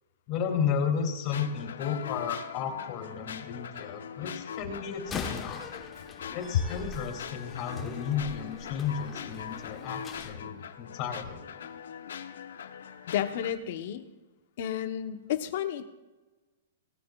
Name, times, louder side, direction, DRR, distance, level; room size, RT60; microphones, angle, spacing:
voice 1, 0.3-5.6 6.3-11.4, left 7 dB, 35° left, 3 dB, 2.8 m, -33 dB
sound 1, 1.3-13.5, left 8 dB, 85° left, 0.9 m, -42 dB
Slam, 5.0-10.3, left 5 dB, 15° left, 1.2 m, -42 dB
voice 2, 13.1-14.1 14.6-15.9, left 10 dB, 55° left, 8 dB, 1.0 m, -31 dB
18.0 x 13.5 x 2.4 m, 1.2 s
hypercardioid pair, 145°, 0 cm